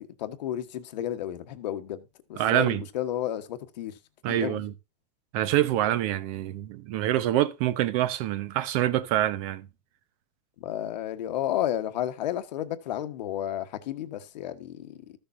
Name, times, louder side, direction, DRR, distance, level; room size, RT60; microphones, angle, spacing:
voice 1, 0.0-2.0 2.3-3.9 4.3-4.6 10.6-15.0, left 11 dB, 85° left, 1.3 m, -32 dB
voice 2, 2.4-2.8 4.2-4.7 5.3-9.7, right 13 dB, 55° right, 1.0 m, -26 dB
14.0 x 6.8 x 2.6 m
supercardioid pair, 140°, 21 cm